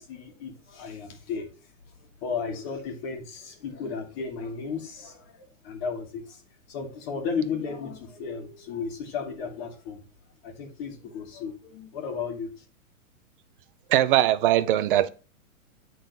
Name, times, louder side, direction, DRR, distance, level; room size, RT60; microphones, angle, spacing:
voice 1, 0.0-1.5 2.2-6.4 6.7-10.0 10.4-12.5, left 5 dB, 45° left, 1.7 m, -34 dB
voice 2, 13.9-15.1, right 13 dB, 40° right, 0.5 m, -21 dB
8.9 x 3.9 x 3.9 m
hypercardioid pair, 150°, 42 cm